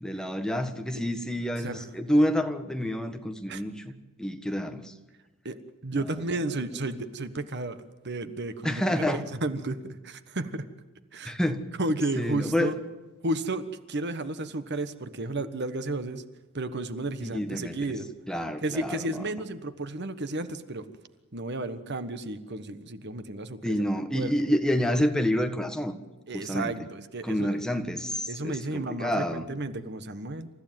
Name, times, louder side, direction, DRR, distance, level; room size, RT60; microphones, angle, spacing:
voice 1, 0.0-3.9 4.2-4.9 8.6-9.2 11.2-11.6 12.2-12.7 17.2-17.8 18.3-19.0 23.6-26.0 26.3-26.7 27.2-29.4, equal, 5° left, 6 dB, 1.4 m, -28 dB
voice 2, 5.8-7.8 8.0-10.7 11.1-11.3 11.8-12.7 13.2-16.2 16.5-18.1 18.6-20.8 21.3-23.9 24.1-24.3 26.3-27.6 28.3-30.5, right 2 dB, 55° right, 11 dB, 1.3 m, -32 dB
28.5 x 15.0 x 9.3 m, 1.2 s
head